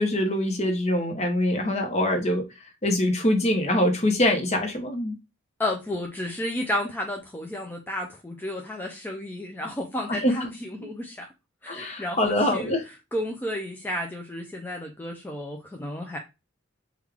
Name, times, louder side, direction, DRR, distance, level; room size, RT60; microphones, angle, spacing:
voice 1, 0.0-2.4 2.8-5.2 10.1-10.3 10.8-10.9 11.7-12.8, left 1 dB, 35° left, 0.8 m, -24 dB
voice 2, 5.6-11.3 11.6-16.2, left 1 dB, 10° left, 0.4 m, -32 dB
3.6 x 2.3 x 3.4 m
head